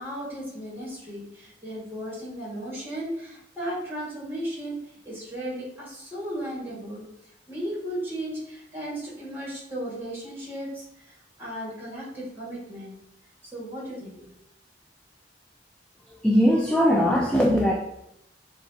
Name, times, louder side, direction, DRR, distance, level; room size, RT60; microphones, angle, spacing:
voice 1, 0.0-4.8 5.0-7.0 7.5-10.8 11.4-13.0 13.4-14.3, equal, 15° right, -5 dB, 1.6 m, -35 dB
voice 2, 16.1-17.7, equal, 5° left, -2 dB, 0.3 m, -20 dB
6.7 x 2.4 x 2.7 m, 0.80 s
head